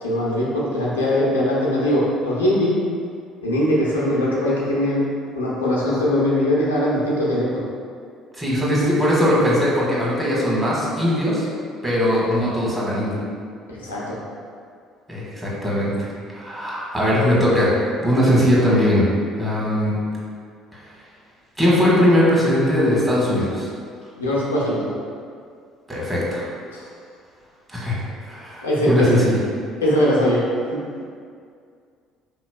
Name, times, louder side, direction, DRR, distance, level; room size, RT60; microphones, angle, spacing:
voice 1, 0.0-2.8 3.4-5.1 5.4-7.6 13.7-14.2 24.2-24.9 26.7-26.9 28.6-29.2 29.8-30.8, left 1 dB, 90° left, -6 dB, 0.6 m, -21 dB
voice 2, 8.4-11.5 11.8-13.2 15.1-17.7 18.0-19.1 19.4-19.9 21.6-23.7 25.9-26.4 27.7-29.4, equal, 15° right, -6 dB, 1.3 m, -20 dB
4.3 x 3.0 x 2.2 m, 2.2 s
hypercardioid pair, 55°, 0 cm